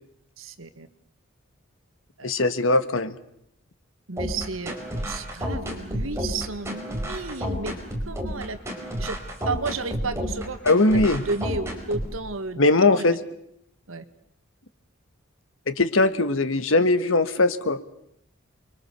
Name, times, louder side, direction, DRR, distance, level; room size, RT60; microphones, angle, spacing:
voice 1, 0.4-0.9 2.2-2.3 4.1-7.7 8.1-9.2 9.4-10.6 10.9-12.6 12.9-13.1 13.9-14.0, right 3 dB, 80° right, 11 dB, 1.7 m, -33 dB
voice 2, 2.2-3.2 10.6-11.2 12.6-13.1 15.7-17.8, left 2 dB, 75° left, 12 dB, 1.5 m, -20 dB
sound 1, 4.2-12.1, equal, 15° right, 4.8 m, -30 dB
29.0 x 23.5 x 6.8 m, 0.77 s
head